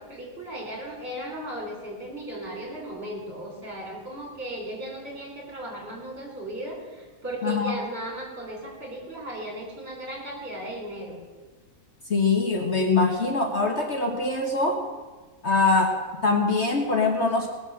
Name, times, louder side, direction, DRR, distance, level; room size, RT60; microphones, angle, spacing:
voice 1, 0.0-11.2, right 1 dB, 40° right, -2 dB, 4.2 m, -36 dB
voice 2, 7.4-7.8 12.1-14.8 15.4-17.5, left 3 dB, 45° left, 3 dB, 1.5 m, -23 dB
19.5 x 6.9 x 7.6 m, 1.3 s
omnidirectional pair, 1.7 m